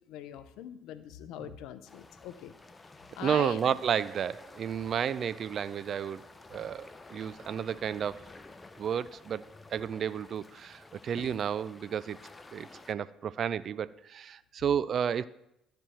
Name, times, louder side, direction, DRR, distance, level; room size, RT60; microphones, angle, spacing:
voice 1, 0.1-2.5 3.2-3.8 11.2-11.3, left 11 dB, 70° left, 0.6 m, -42 dB
sound 1, 1.9-12.9, left 3 dB, 20° left, 0.8 m, -52 dB
voice 2, 3.2-8.2 8.8-9.4 9.7-12.2 12.5-15.3, right 8 dB, 50° right, 0.4 m, -32 dB
12.5 x 4.5 x 7.7 m
hypercardioid pair, 55°, 0 cm